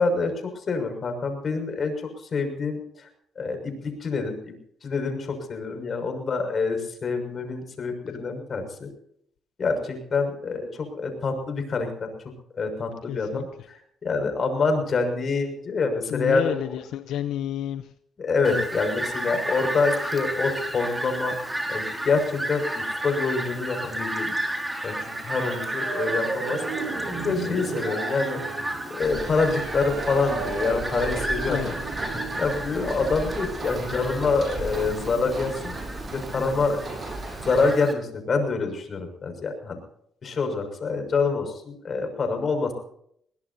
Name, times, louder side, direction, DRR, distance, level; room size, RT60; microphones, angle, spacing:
voice 1, 0.0-3.1 3.4-4.5 4.8-8.9 9.6-12.1 12.5-16.5 18.2-24.5 24.8-28.6 28.9-31.8 32.1-35.8 36.1-36.8 37.4-39.8 40.2-42.7, left 4 dB, 45° left, 6 dB, 6.1 m, -26 dB
voice 2, 13.1-13.4 16.1-17.9 18.5-18.6 31.5-31.7, left 11 dB, 85° left, 11 dB, 0.8 m, -30 dB
Fowl, 18.4-37.9, right 1 dB, 10° right, 4.6 m, -32 dB
sound 1, 25.0-32.4, right 5 dB, 75° right, 7.5 m, -35 dB
sound 2, 29.0-37.7, right 2 dB, 45° right, 7.6 m, -36 dB
22.0 x 19.0 x 2.8 m, 0.67 s
cardioid pair, 90°, 0 cm